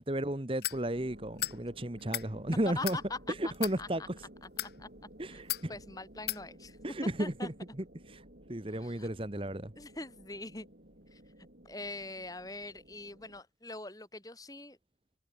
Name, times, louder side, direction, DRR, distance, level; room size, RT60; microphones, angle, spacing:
voice 1, 0.0-3.0 3.4-4.0 5.2-5.7 6.8-7.5 8.1-8.2 8.5-9.7, right 1 dB, 30° right, 1.4 m, -33 dB
sound 1, 0.6-0.8 1.4-1.6 2.0-2.3 2.8-3.0 3.5-3.8 4.4-4.7 5.5-5.7 6.3-6.4, left 14 dB, 60° left, 1.0 m, -35 dB
sound 2, 0.7-13.4, right 1 dB, 55° right, 4.4 m, -55 dB
voice 2, 2.7-3.2 3.4-3.5 3.8-4.1 4.6-4.9 5.3-5.4 5.7-7.5 8.7-9.1 9.8-10.7 11.1-11.2 11.6-14.8, left 2 dB, 20° left, 5.1 m, -43 dB
head